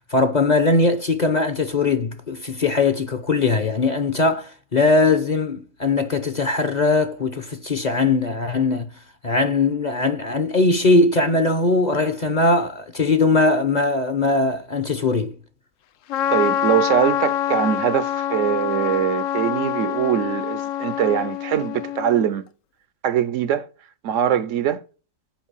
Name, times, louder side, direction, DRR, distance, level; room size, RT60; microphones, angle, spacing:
voice 1, 0.1-8.9 9.2-15.4, left 3 dB, 40° left, 0.8 m, -20 dB
Trumpet, 16.1-22.3, left 10 dB, 75° left, 1.0 m, -25 dB
voice 2, 16.3-22.4 23.0-23.7 24.0-24.8, right 9 dB, 70° right, 1.0 m, -22 dB
7.4 x 5.1 x 5.5 m
omnidirectional pair, 1.4 m